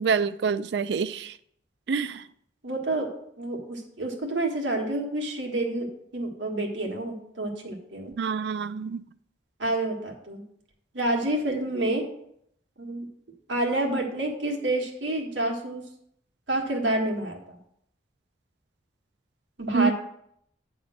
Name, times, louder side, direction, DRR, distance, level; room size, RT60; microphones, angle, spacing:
voice 1, 0.0-1.4 1.9-2.2 8.1-9.0 19.7-19.9, right 5 dB, 70° right, 0.4 m, -26 dB
voice 2, 2.6-3.1 3.4-5.9 6.1-8.1 9.6-10.4 10.9-12.1 12.8-13.1 13.5-15.8 16.5-17.6 19.6-19.9, right 1 dB, 85° right, 1.7 m, -28 dB
9.6 x 3.6 x 6.2 m
head